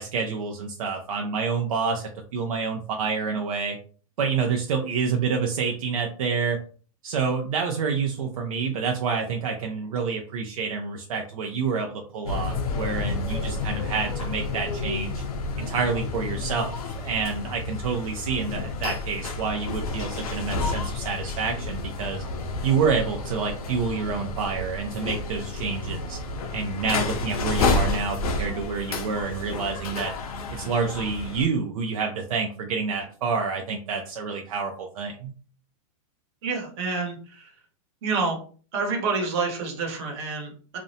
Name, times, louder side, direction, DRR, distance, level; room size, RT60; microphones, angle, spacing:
voice 1, 0.0-3.8 4.2-6.6 7.0-15.2 15.6-16.7 17.0-22.2 22.6-26.2 26.5-30.1 30.5-35.3, right 5 dB, 75° right, 2 dB, 0.5 m, -28 dB
sound 1, 12.3-31.4, left 3 dB, 85° left, 0.6 m, -30 dB
voice 2, 36.4-37.5 38.0-38.4 38.7-40.8, right 4 dB, 45° right, 1 dB, 1.0 m, -28 dB
2.5 x 2.1 x 2.6 m, 0.41 s
hypercardioid pair, 150°, 18 cm